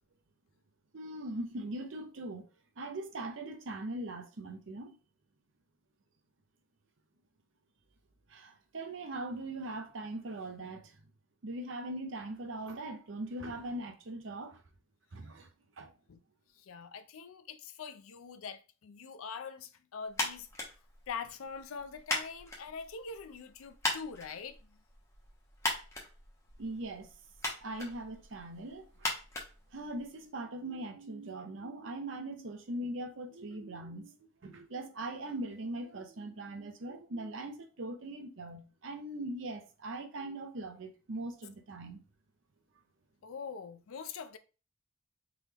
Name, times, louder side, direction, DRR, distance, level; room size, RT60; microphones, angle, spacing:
voice 1, 0.9-2.5 2.8-5.0 8.3-11.0 11.4-14.6 15.1-15.5 15.8-15.9 26.6-27.1 27.6-29.1 29.7-42.0, right 1 dB, 70° right, 0.6 m, -41 dB
voice 2, 16.6-20.5 21.1-24.6 43.2-44.4, left 5 dB, 90° left, 0.5 m, -43 dB
sound 1, 20.1-30.3, left 2 dB, 15° left, 0.9 m, -40 dB
3.8 x 3.3 x 2.9 m
head